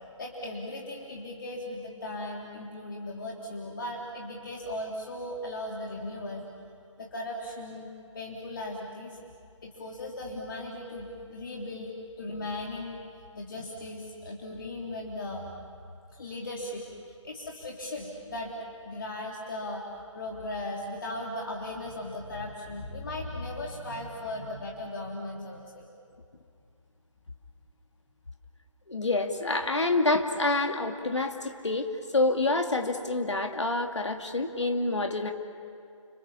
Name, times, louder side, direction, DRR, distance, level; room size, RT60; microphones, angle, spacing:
voice 1, 0.2-6.5 7.0-7.9 8.1-9.2 9.6-11.9 12.2-13.0 13.3-15.5 16.1-16.9 17.2-18.5 18.8-19.9 20.1-25.8, left 1 dB, 40° left, -2 dB, 3.3 m, -37 dB
voice 2, 28.9-31.9 32.1-35.3, left 2 dB, 60° left, 4 dB, 2.6 m, -27 dB
30.0 x 27.5 x 7.2 m, 2.4 s
figure-of-eight pair, 150°, 17 cm